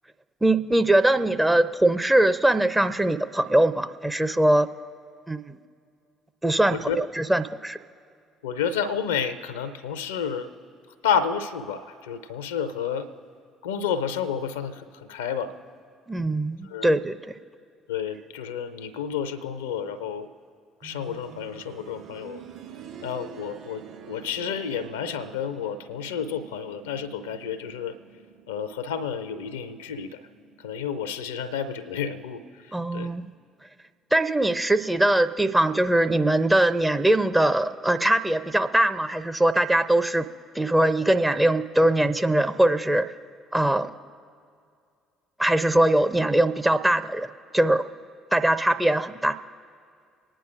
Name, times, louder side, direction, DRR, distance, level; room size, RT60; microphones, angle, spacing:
voice 1, 0.4-4.7 5.3-5.6 6.4-7.8 16.1-17.4 32.7-33.3 34.1-40.3 40.5-43.1 43.5-43.9 45.4-47.3 47.5-47.9 48.3-49.4, right 1 dB, 10° right, 11 dB, 0.5 m, -21 dB
voice 2, 8.4-10.5 11.0-13.1 13.6-15.5 16.6-16.9 17.9-20.3 20.8-22.4 23.0-28.0 28.5-30.2 30.6-33.2, left 7 dB, 75° left, 13 dB, 0.5 m, -30 dB
sound 1, 20.8-31.6 33.0-33.1, right 7 dB, 60° right, 2.9 m, -47 dB
26.5 x 9.9 x 2.5 m, 2.3 s
figure-of-eight pair, 50°, 0 cm